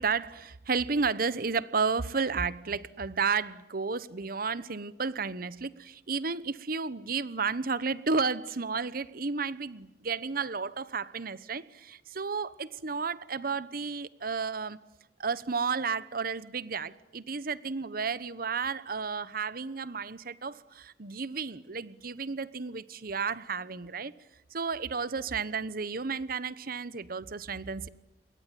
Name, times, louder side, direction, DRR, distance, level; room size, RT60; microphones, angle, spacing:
voice 1, 0.0-14.8 15.2-24.1 24.5-27.9, right 5 dB, 55° right, 1.1 m, -32 dB
28.0 x 22.0 x 9.3 m
head